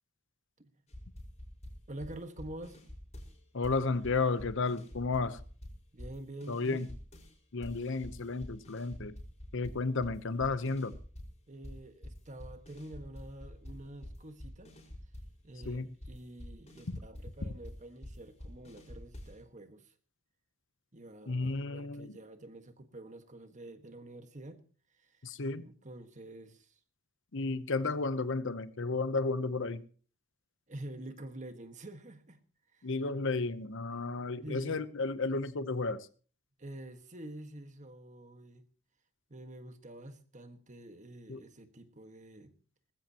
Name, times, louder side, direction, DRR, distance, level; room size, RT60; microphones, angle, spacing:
sound 1, 0.9-3.4 3.6-7.3 7.6-11.4 11.6-19.4, left 1 dB, 35° left, 5.0 m, -47 dB
voice 1, 1.9-2.8 5.9-6.9 11.5-14.8 15.4-19.9 20.9-24.6 24.9-26.8 30.7-32.4 32.7-32.9 34.4-34.8 36.6-38.7 39.3-42.6, right 1 dB, 35° right, 1.6 m, -47 dB
voice 2, 3.5-5.4 6.5-6.9 7.5-9.1 9.5-10.9 15.7-15.9 16.9-17.0 21.3-22.1 25.2-25.6 27.3-29.8 32.8-36.1 41.3-41.4, left 3 dB, 65° left, 0.9 m, -33 dB
19.5 x 15.0 x 3.0 m
head